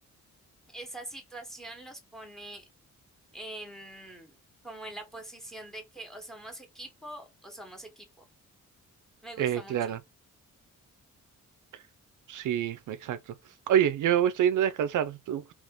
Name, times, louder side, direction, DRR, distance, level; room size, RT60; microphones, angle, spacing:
voice 1, 0.7-2.7 3.3-4.3 4.6-8.3 9.2-10.0, right 1 dB, ahead, 1.0 m, -44 dB
voice 2, 9.4-10.0 12.3-13.2 13.7-15.5, right 10 dB, 70° right, 0.5 m, -26 dB
3.4 x 3.0 x 3.6 m
wide cardioid pair, 170°, 32 cm